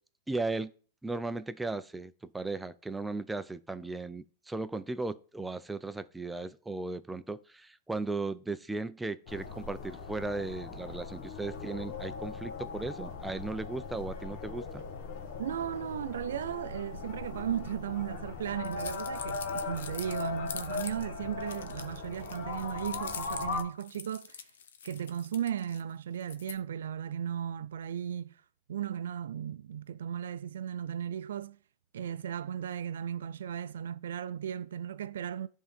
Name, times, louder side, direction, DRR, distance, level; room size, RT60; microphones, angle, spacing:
voice 1, 0.3-0.7 1.0-14.8, right 3 dB, 10° right, 0.5 m, -36 dB
sound 1, 9.3-23.6, left 4 dB, 60° left, 1.6 m, -39 dB
voice 2, 15.4-24.4 24.8-28.4 28.7-31.6 31.9-35.5, right 9 dB, 80° right, 0.4 m, -36 dB
sound 2, 18.6-21.0 21.4-25.8 26.2-26.6, left 8 dB, 80° left, 0.7 m, -44 dB
11.0 x 3.7 x 5.3 m
hypercardioid pair, 110°, 0 cm